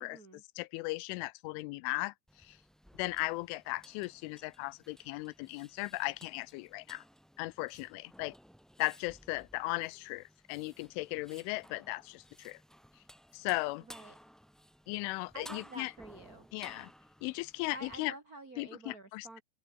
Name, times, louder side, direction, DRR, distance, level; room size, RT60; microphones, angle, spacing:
voice 1, 0.0-0.4 13.8-14.2 15.3-16.5 17.7-19.4, right 2 dB, 25° right, 2.3 m, -49 dB
voice 2, 0.6-2.1 2.4-2.6 3.0-7.0 7.4-8.4 8.8-12.6 13.3-13.8 14.9-15.9 16.5-16.9 17.2-18.1 18.6-19.4, left 22 dB, 90° left, 3.1 m, -37 dB
sound 1, 2.3-18.0, equal, ahead, 2.0 m, -57 dB
open air
omnidirectional pair, 5.5 m